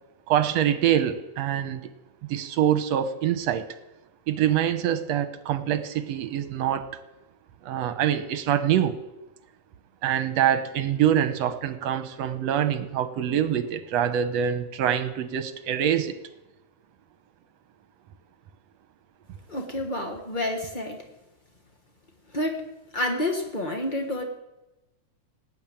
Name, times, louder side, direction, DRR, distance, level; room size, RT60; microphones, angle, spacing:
voice 1, 0.3-1.8 2.3-3.7 4.3-6.9 7.6-9.0 10.0-16.1, right 10 dB, 70° right, 11 dB, 1.9 m, -25 dB
voice 2, 19.5-21.0 22.3-22.6 22.9-24.2, left 1 dB, 80° left, 3 dB, 0.4 m, -29 dB
18.5 x 8.8 x 8.9 m, 1.0 s
omnidirectional pair, 3.4 m